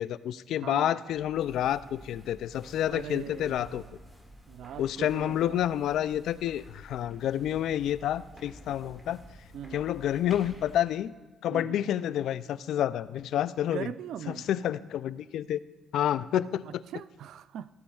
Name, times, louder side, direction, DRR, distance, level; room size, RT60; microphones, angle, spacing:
voice 1, 0.0-3.8 4.8-9.2 9.7-11.1 11.4-13.9 14.3-15.6 15.9-16.8, left 11 dB, 80° left, 16 dB, 0.3 m, -29 dB
voice 2, 0.6-1.0 2.9-3.9 4.5-5.6 9.5-9.8 11.5-11.8 13.6-14.5 16.6-17.7, right 9 dB, 75° right, 16 dB, 0.3 m, -40 dB
sound 1, 1.1-10.8, equal, 10° right, 2.0 m, -51 dB
16.0 x 8.5 x 2.4 m, 1.2 s
cardioid pair, 90°, 0 cm